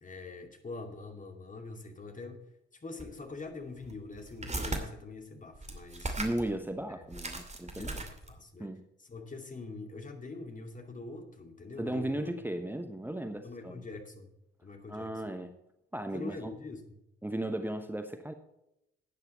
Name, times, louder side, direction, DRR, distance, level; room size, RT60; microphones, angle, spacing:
voice 1, 0.0-2.4 2.8-6.2 6.9-7.2 7.7-8.7 9.0-12.3 13.4-14.3 14.6-15.3 16.1-16.8, left 3 dB, 25° left, 4 dB, 2.5 m, -44 dB
sound 1, 3.0-3.1 3.8-4.8 5.5-6.5 6.8-6.9 7.1-8.4, right 2 dB, 25° right, 2.5 m, -37 dB
voice 2, 6.2-8.0 8.6-8.9 11.8-13.7 14.9-15.5 15.9-16.5 17.2-18.3, right 1 dB, 5° right, 7 dB, 1.1 m, -36 dB
12.5 x 9.5 x 4.3 m, 0.84 s
figure-of-eight pair, 45°, 29 cm